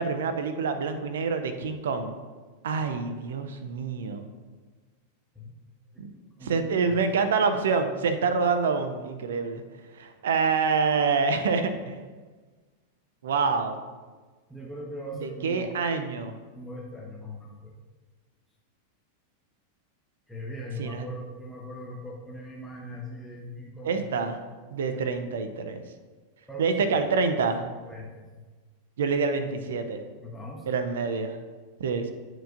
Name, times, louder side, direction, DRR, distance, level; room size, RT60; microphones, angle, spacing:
voice 1, 0.0-2.1 2.6-4.3 6.0-6.1 6.4-9.6 9.9-12.0 13.2-13.8 15.2-16.4 20.8-21.1 23.8-24.4 24.7-25.8 26.6-27.6 29.0-30.0 30.7-31.4 31.8-32.1, right 5 dB, 60° right, 8 dB, 0.5 m, -26 dB
voice 2, 6.1-7.0 14.5-15.7 16.5-17.7 20.3-24.3 26.5-26.8 27.9-28.3 30.2-30.7, left 1 dB, ahead, -5 dB, 0.9 m, -40 dB
10.0 x 4.5 x 2.5 m, 1.4 s
figure-of-eight pair, 90°, 0 cm